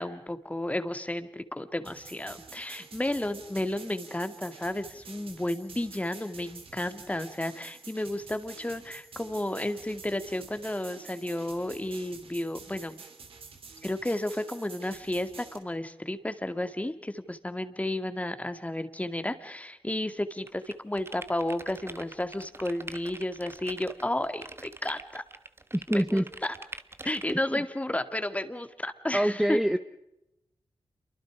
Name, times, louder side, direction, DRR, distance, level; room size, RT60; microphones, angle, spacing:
voice 1, 0.0-13.0 13.8-25.2 25.9-26.5 27.0-29.8, left 1 dB, 15° left, 9 dB, 2.0 m, -32 dB
sound 1, 1.8-15.6, right 5 dB, 85° right, 3.1 m, -49 dB
sound 2, 20.5-27.3, right 2 dB, 25° right, 1.2 m, -44 dB
voice 2, 25.7-26.2 27.3-27.4 29.1-29.8, equal, 5° right, 9 dB, 0.9 m, -25 dB
28.0 x 24.0 x 4.9 m, 0.86 s
cardioid pair, 70°, 9 cm